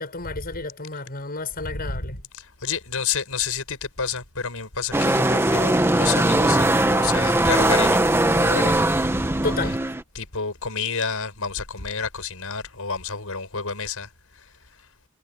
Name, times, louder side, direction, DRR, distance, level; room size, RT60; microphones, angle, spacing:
voice 1, 0.0-2.2 9.4-9.8, left 3 dB, 45° left, 6.3 m, -31 dB
voice 2, 1.7-9.0 10.1-14.1 14.3-14.5, left 5 dB, 70° left, 6.7 m, -30 dB
sound 1, 4.9-10.0, right 1 dB, 10° right, 1.4 m, -20 dB
head